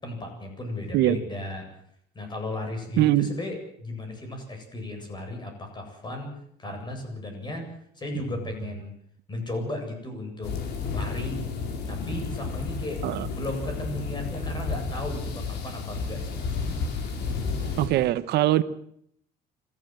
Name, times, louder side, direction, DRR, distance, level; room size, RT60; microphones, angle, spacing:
voice 1, 0.0-1.7 2.1-6.3 6.6-7.7 7.9-8.9 9.3-10.5 10.9-11.4 11.9-16.5, left 2 dB, 25° left, 4 dB, 7.9 m, -35 dB
voice 2, 3.0-3.3 13.0-13.3 17.6-18.6, right 15 dB, 75° right, 14 dB, 1.0 m, -22 dB
sound 1, 10.4-17.9, left 4 dB, 80° left, 5.3 m, -32 dB
26.5 x 15.0 x 7.8 m, 0.69 s
cardioid pair, 110°, 17 cm